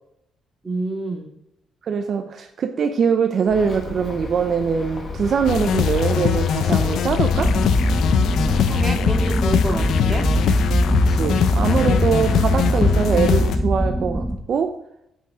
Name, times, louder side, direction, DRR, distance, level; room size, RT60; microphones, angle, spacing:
voice 1, 0.6-1.3 8.7-10.3, right 2 dB, 20° right, 2 dB, 2.1 m, -28 dB
voice 2, 1.8-7.5 11.1-14.8, right 6 dB, 55° right, 6 dB, 0.6 m, -22 dB
Bird, 3.5-8.9, left 3 dB, 35° left, 1.8 m, -34 dB
sound 1, 5.5-13.6, left 9 dB, 75° left, 0.6 m, -21 dB
sound 2, 7.3-14.4, right 1 dB, 5° right, 1.0 m, -22 dB
8.5 x 5.9 x 4.9 m, 0.78 s
cardioid pair, 90°, 0 cm